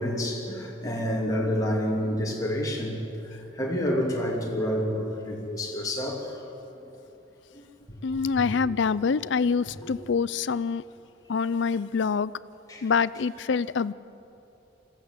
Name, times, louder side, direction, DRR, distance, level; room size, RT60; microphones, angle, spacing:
voice 1, 0.0-6.4 7.5-7.6 9.8-9.9 12.7-12.9, equal, 20° left, -2 dB, 2.8 m, -29 dB
voice 2, 8.0-10.8 11.3-12.3 12.8-13.9, left 5 dB, 65° left, 18 dB, 0.5 m, -25 dB
21.5 x 15.5 x 8.1 m, 3.0 s
head